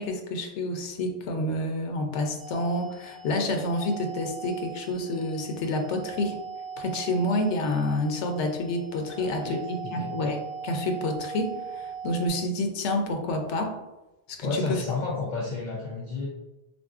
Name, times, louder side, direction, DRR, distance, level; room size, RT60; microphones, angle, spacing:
voice 1, 0.0-6.4 6.8-13.7 14.3-14.8, left 1 dB, 85° left, 4 dB, 0.9 m, -29 dB
sound 1, 2.4-12.3, right 6 dB, 50° right, 0.8 m, -40 dB
voice 2, 9.1-10.1 14.4-16.3, left 3 dB, 55° left, -4 dB, 0.5 m, -32 dB
3.7 x 2.6 x 2.3 m, 1.0 s
omnidirectional pair, 1.2 m